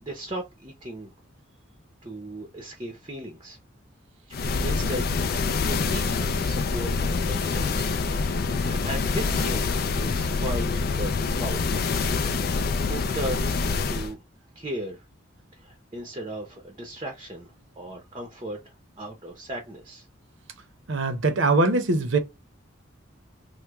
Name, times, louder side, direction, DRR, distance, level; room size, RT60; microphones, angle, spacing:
voice 1, 0.0-1.1 2.0-3.6 4.3-5.2 5.6-7.9 8.5-11.1 11.4-11.9 12.5-14.2 14.5-15.1 15.5-17.5 17.8-20.1, right 1 dB, 25° right, 0.6 m, -37 dB
sound 1, 4.3-14.1, left 4 dB, 50° left, 0.4 m, -26 dB
voice 2, 20.9-22.2, right 3 dB, 75° right, 0.7 m, -22 dB
3.1 x 2.1 x 3.4 m
head